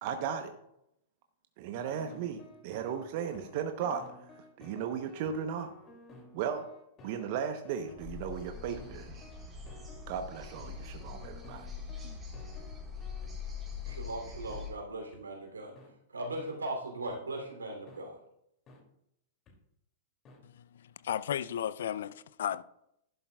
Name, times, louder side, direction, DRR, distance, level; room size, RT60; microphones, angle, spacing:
voice 1, 0.0-0.5 1.6-4.0 4.3-5.7 6.3-6.7 7.0-9.2 10.1-11.7 12.0-12.2, right 7 dB, 50° right, 0.8 m, -36 dB
sound 1, 1.8-13.3 13.9-14.0 14.5-14.6 15.1-15.2 15.8-15.9 16.4-16.5 17.1-17.2 17.9-18.0 18.7-18.8 19.5-19.6 20.2-20.4, equal, 30° left, 2.6 m, -54 dB
sound 2, 8.0-14.7, left 6 dB, 20° right, 3.4 m, -43 dB
voice 2, 13.9-15.7 16.1-18.2, right 2 dB, 85° right, 2.9 m, -38 dB
voice 3, 20.4-22.6, left 10 dB, 65° left, 0.4 m, -35 dB
11.5 x 11.0 x 2.3 m
figure-of-eight pair, 100°, 0 cm